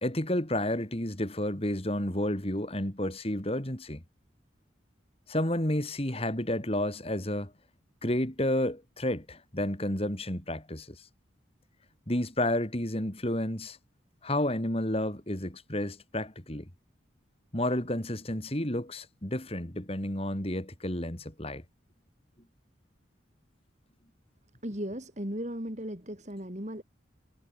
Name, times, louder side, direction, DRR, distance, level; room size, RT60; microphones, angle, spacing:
voice 1, 0.0-4.0 5.3-7.5 8.0-11.0 12.1-13.8 14.2-16.7 17.5-21.6, left 1 dB, 30° left, 2.9 m, -31 dB
voice 2, 24.6-26.8, equal, 35° right, 4.5 m, -36 dB
head